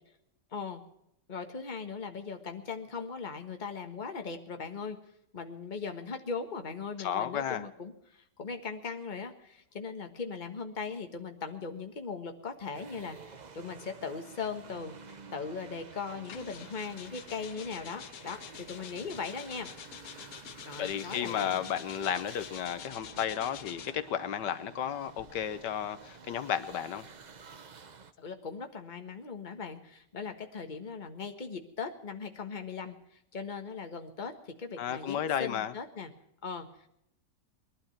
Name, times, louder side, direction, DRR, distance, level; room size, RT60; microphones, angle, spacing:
voice 1, 0.5-0.8 1.3-5.0 5.3-19.7 20.6-21.6 28.2-33.0 33.3-36.1 36.4-36.9, left 5 dB, 30° left, 5 dB, 1.5 m, -39 dB
voice 2, 7.0-7.6 20.8-27.0 34.8-35.7, left 9 dB, 80° left, 13 dB, 1.5 m, -33 dB
sound 1, 12.7-28.1, right 5 dB, 40° right, 0.6 m, -51 dB
sound 2, 16.2-24.1 25.0-27.5, left 10 dB, 65° left, 1.1 m, -48 dB
20.5 x 12.0 x 5.8 m, 0.78 s
omnidirectional pair, 1.8 m